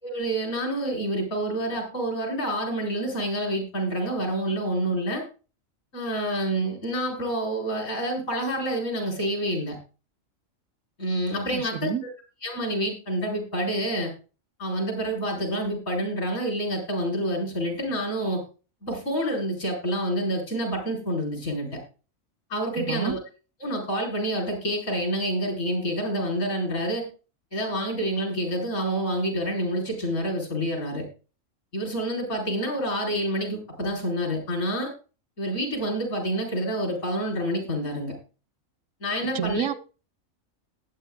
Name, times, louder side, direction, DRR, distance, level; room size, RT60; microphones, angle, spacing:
voice 1, 0.0-5.2 5.9-9.8 11.0-12.1 12.4-14.1 14.6-18.4 18.8-21.8 22.5-23.2 23.6-27.0 27.5-31.0 31.7-34.9 35.4-38.1 39.0-39.7, right 1 dB, 75° left, 4.9 m, -28 dB
voice 2, 11.5-12.0 22.8-23.2 39.3-39.7, right 8 dB, 80° right, 1.1 m, -29 dB
18.5 x 8.5 x 2.4 m
omnidirectional pair, 1.4 m